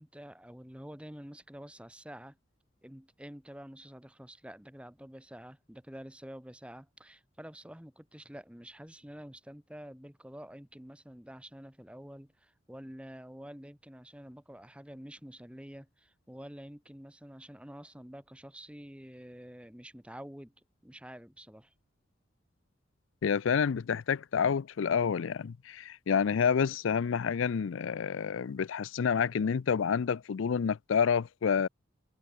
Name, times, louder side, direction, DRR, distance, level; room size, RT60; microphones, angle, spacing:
voice 1, 0.0-2.4 2.8-20.5 20.8-21.7, equal, 5° right, 1.3 m, -48 dB
voice 2, 23.2-31.7, left 6 dB, 75° left, 0.4 m, -28 dB
head